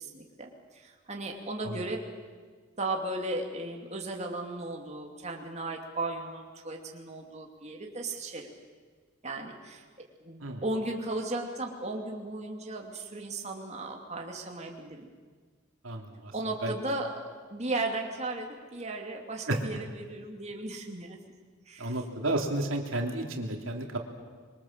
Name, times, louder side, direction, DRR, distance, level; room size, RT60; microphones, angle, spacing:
voice 1, 0.0-2.0 2.8-8.5 9.2-9.8 10.2-15.1 16.3-17.1 17.5-21.2 21.7-22.0, right 2 dB, 35° right, 1 dB, 2.7 m, -36 dB
voice 2, 15.8-16.3 16.6-16.7 19.5-19.6 21.8-24.0, right 1 dB, 85° right, 2 dB, 3.1 m, -32 dB
25.5 x 23.5 x 7.5 m, 1.5 s
head